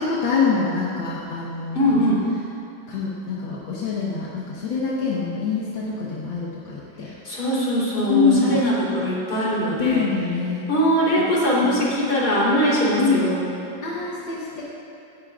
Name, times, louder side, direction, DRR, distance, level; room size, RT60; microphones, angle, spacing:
voice 1, 0.0-2.1 2.9-7.1 8.1-8.6 9.8-10.7 11.6-11.8 13.0-13.3 13.8-14.6, left 5 dB, 85° left, -6 dB, 2.1 m, -24 dB
voice 2, 1.7-2.2 7.2-10.0 10.7-13.6, equal, 55° left, -7 dB, 4.1 m, -21 dB
16.5 x 16.0 x 2.5 m, 2.7 s
omnidirectional pair, 2.0 m